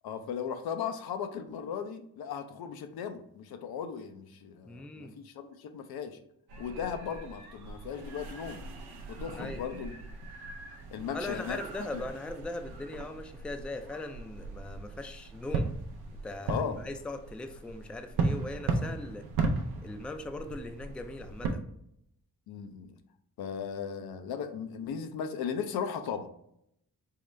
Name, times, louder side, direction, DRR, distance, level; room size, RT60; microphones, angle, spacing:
voice 1, 0.0-6.2 6.6-8.6 9.1-10.0 10.9-11.6 11.9-12.0 16.5-16.8 22.5-22.9 23.4-26.3, left 7 dB, 75° left, 7 dB, 0.5 m, -37 dB
voice 2, 4.7-5.2 9.4-9.6 11.1-15.8 16.2-19.3 19.8-21.6, left 2 dB, 5° left, 7 dB, 0.3 m, -40 dB
sound 1, 6.5-21.5, right 3 dB, 85° right, 0.5 m, -37 dB
3.8 x 2.1 x 3.2 m, 0.73 s
supercardioid pair, 40°, 37 cm